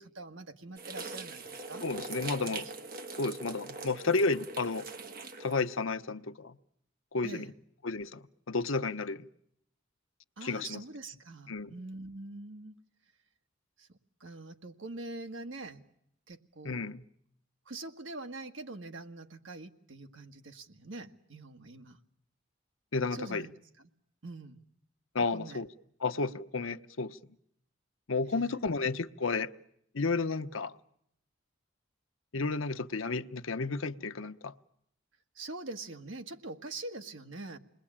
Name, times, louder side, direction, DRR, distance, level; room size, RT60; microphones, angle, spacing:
voice 1, 0.0-1.9 2.4-2.6 7.2-7.5 10.4-12.7 13.8-15.8 16.3-16.9 17.6-22.0 23.1-23.5 23.8-23.9 24.2-24.6 25.3-25.6 28.3-28.6 35.3-37.6, right 2 dB, 65° right, 6 dB, 1.7 m, -44 dB
sound 1, 0.8-5.7, right 4 dB, 45° right, 1.8 m, -42 dB
voice 2, 1.8-2.7 3.2-4.9 5.4-6.6 7.1-7.5 7.8-9.2 10.4-10.8 11.5-11.7 16.6-17.0 22.9-23.5 25.1-25.7 26.0-27.2 28.1-29.5 29.9-30.7 32.3-34.5, left 3 dB, 85° left, 9 dB, 1.0 m, -32 dB
28.5 x 21.0 x 8.8 m, 0.75 s
head